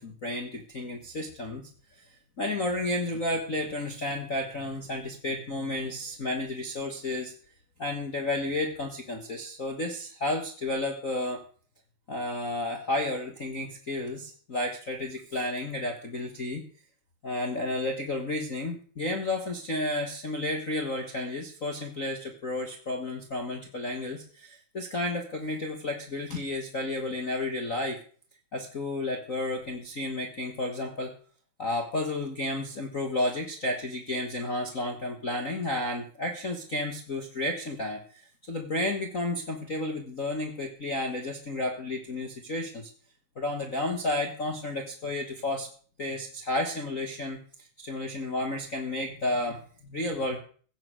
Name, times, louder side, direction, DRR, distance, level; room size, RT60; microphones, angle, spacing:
voice 1, 0.0-1.6 2.4-7.3 7.8-11.4 12.1-16.6 17.2-28.0 28.5-31.1 31.6-38.2 38.5-42.9 43.3-45.7 46.0-47.4 47.8-50.4, left 2 dB, 40° left, 1 dB, 1.3 m, -32 dB
16.0 x 7.9 x 6.3 m, 0.44 s
omnidirectional pair, 3.5 m